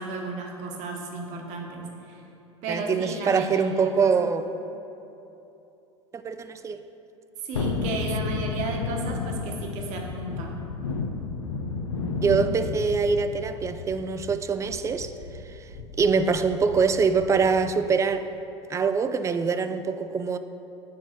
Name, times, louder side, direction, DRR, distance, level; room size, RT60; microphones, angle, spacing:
voice 1, 0.0-2.2 2.6-4.2 7.4-10.6, right 2 dB, 55° right, 1 dB, 1.3 m, -34 dB
voice 2, 2.7-4.5 6.1-6.8 12.2-15.1 15.5-15.7 16.0-18.3 18.7-20.4, right 5 dB, 20° right, 11 dB, 0.4 m, -24 dB
Thunderstorm, 7.5-17.8 18.1-18.2, left 4 dB, 85° left, 0.7 m, -32 dB
7.0 x 4.6 x 6.1 m, 2.9 s
hypercardioid pair, 85°, 15 cm